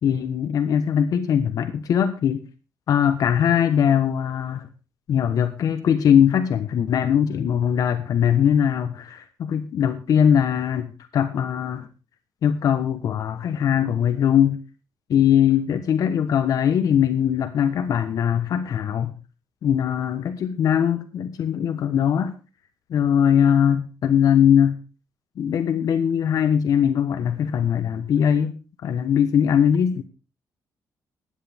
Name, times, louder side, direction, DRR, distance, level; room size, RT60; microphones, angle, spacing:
voice 1, 0.0-2.4 2.9-4.7 5.1-11.9 12.4-14.6 15.1-19.1 19.6-22.3 22.9-24.8 25.4-28.5 28.8-30.0, left 8 dB, 55° left, 9 dB, 1.2 m, -21 dB
16.0 x 10.5 x 3.5 m, 0.33 s
cardioid pair, 170°, 7 cm